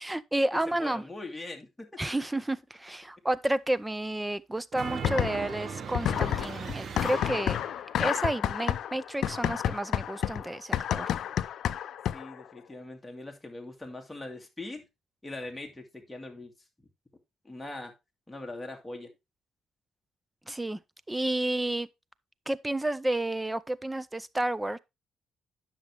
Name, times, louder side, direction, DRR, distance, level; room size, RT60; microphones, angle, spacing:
voice 1, 0.0-1.0 2.0-7.6 8.0-11.1 20.5-20.8 21.1-21.9 22.5-24.8, right 1 dB, 10° right, 0.5 m, -31 dB
voice 2, 0.7-2.0 12.1-14.8 15.2-16.5 17.4-17.9 18.3-19.1, left 2 dB, 10° left, 2.2 m, -41 dB
sound 1, 4.7-7.9, right 6 dB, 50° right, 0.9 m, -39 dB
sound 2, 5.0-5.6 5.9-12.4, left 10 dB, 70° left, 0.4 m, -30 dB
9.8 x 6.3 x 3.3 m
cardioid pair, 90°, 0 cm